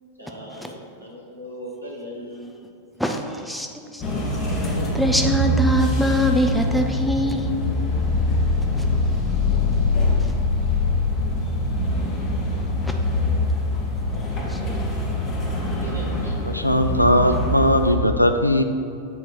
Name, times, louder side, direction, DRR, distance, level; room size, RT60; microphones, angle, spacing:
voice 1, 0.2-2.6 15.8-16.3, equal, 85° right, -4 dB, 1.4 m, -38 dB
voice 2, 3.0-4.0 4.5-7.6 10.2-10.3 12.8-13.2 14.4-14.8, equal, ahead, 3 dB, 0.6 m, -24 dB
sound 1, 4.0-18.0, left 2 dB, 30° left, 1.3 m, -23 dB
voice 3, 16.5-18.6, left 1 dB, 90° left, 7 dB, 0.4 m, -18 dB
7.6 x 3.1 x 5.6 m, 2.4 s
figure-of-eight pair, 90°, 0 cm